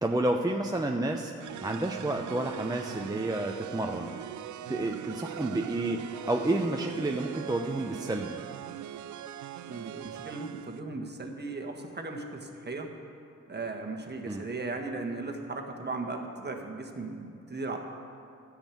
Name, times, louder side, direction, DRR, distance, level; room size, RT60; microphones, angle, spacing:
voice 1, 0.0-1.3 1.6-4.1 4.7-8.4 14.3-14.4, right 2 dB, 10° right, 2 dB, 0.8 m, -30 dB
sound 1, 1.4-10.8, right 12 dB, 70° right, 0.5 m, -41 dB
voice 2, 9.7-12.9 13.5-17.8, right 3 dB, 35° right, 2 dB, 1.6 m, -37 dB
10.5 x 6.5 x 8.5 m, 2.4 s
cardioid pair, 55°, 31 cm